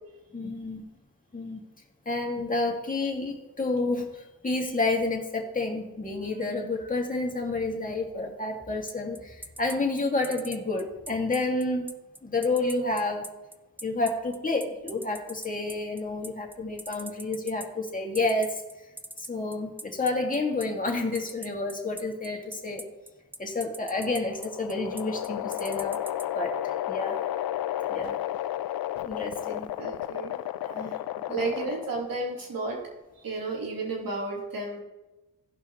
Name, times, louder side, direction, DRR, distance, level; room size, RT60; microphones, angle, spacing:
voice 1, 0.3-0.8 1.3-1.6 2.1-11.9 12.2-13.3 13.8-18.6 19.2-22.8 23.4-26.0 26.3-27.2 27.9-28.2 29.0-29.7 30.6-30.9 31.3-31.5, left 2 dB, 20° left, 0 dB, 2.5 m, -30 dB
sound 1, 8.9-26.2, right 1 dB, 5° right, 0.6 m, -41 dB
sound 2, 23.9-32.1, left 13 dB, 70° left, 0.5 m, -32 dB
voice 2, 29.8-30.4 31.3-32.8 33.2-34.8, right 3 dB, 65° right, -2 dB, 3.5 m, -32 dB
16.5 x 5.6 x 3.2 m, 1.0 s
cardioid pair, 60°, 37 cm